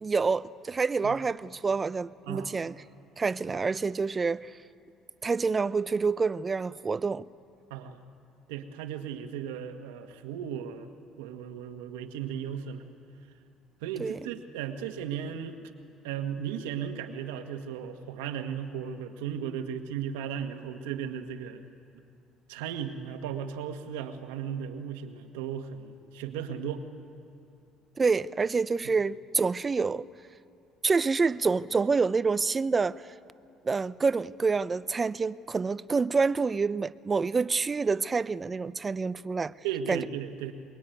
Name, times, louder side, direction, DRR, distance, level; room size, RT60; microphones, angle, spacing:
voice 1, 0.0-2.7 3.2-4.5 5.2-7.3 14.0-14.2 28.0-30.1 30.8-33.0 33.6-39.5 39.9-40.0, right 4 dB, 30° right, 0.6 m, -27 dB
voice 2, 2.3-2.7 3.5-3.6 7.7-8.0 8.5-10.9 11.2-12.8 13.8-15.6 16.0-21.6 22.5-26.8 39.6-40.5, right 8 dB, 90° right, 1.6 m, -36 dB
23.0 x 22.0 x 9.3 m
supercardioid pair, 80°, 0 cm